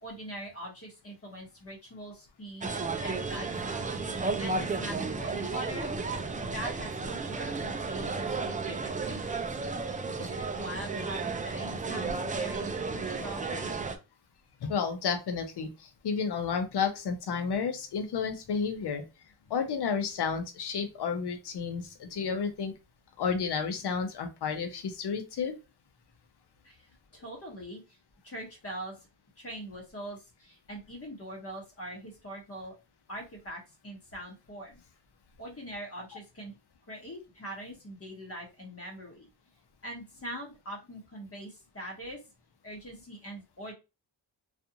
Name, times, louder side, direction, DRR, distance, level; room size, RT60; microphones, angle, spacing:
voice 1, 0.0-3.9 4.4-6.1 6.5-9.4 10.2-13.7 26.6-26.8 27.1-28.0 28.2-29.1 29.4-32.7 33.1-34.8 35.4-36.5 36.9-39.3 39.8-42.2 42.6-43.7, right 1 dB, 35° left, -1 dB, 1.1 m, -42 dB
sound 1, 2.6-14.0, right 4 dB, 20° right, 0.3 m, -33 dB
voice 2, 14.6-19.0 19.5-22.7 23.2-25.5, left 6 dB, 70° left, 6 dB, 0.8 m, -31 dB
2.5 x 2.4 x 2.8 m, 0.27 s
cardioid pair, 90°, 41 cm